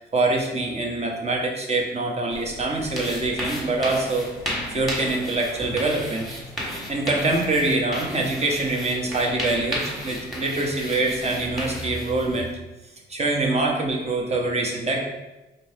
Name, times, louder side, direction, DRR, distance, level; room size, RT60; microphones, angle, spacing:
voice 1, 0.0-4.3 4.7-6.3 6.9-12.5 13.1-15.0, right 2 dB, 30° right, 0 dB, 0.9 m, -24 dB
sound 1, 2.3-12.5, equal, ahead, 1.2 m, -34 dB
4.2 x 2.8 x 3.4 m, 1.1 s
cardioid pair, 90°, 20 cm